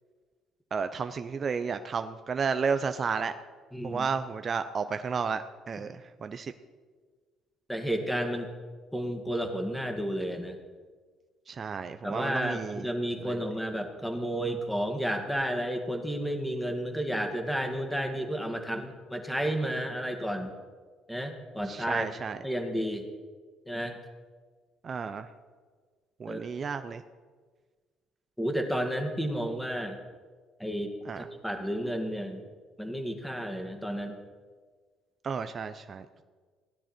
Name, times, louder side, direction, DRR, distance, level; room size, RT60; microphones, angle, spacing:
voice 1, 0.7-3.3 3.8-6.5 11.5-12.9 13.2-13.4 21.7-22.4 24.8-25.3 26.2-27.0 31.1-31.2 35.2-36.2, right 5 dB, 45° right, 9 dB, 0.6 m, -32 dB
voice 2, 3.7-4.1 7.7-8.5 8.9-10.6 12.0-20.5 21.1-22.1 22.4-23.1 23.7-24.0 26.3-26.5 28.4-30.0 30.6-32.4 32.8-34.2, equal, ahead, 4 dB, 2.2 m, -32 dB
16.5 x 9.9 x 4.5 m, 1.5 s
hypercardioid pair, 60°, 0 cm